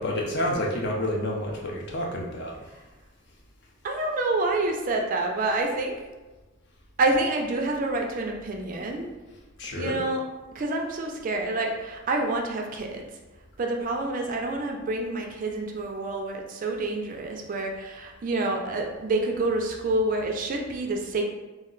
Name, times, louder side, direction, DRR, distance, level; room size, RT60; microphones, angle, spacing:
voice 1, 0.0-2.8 9.6-9.9, left 1 dB, 55° left, -1 dB, 0.5 m, -29 dB
voice 2, 3.8-6.0 7.0-9.1 9.7-10.2 10.5-13.0 13.6-21.2, right 2 dB, 40° right, 2 dB, 0.3 m, -27 dB
2.3 x 2.1 x 3.6 m, 1.2 s
head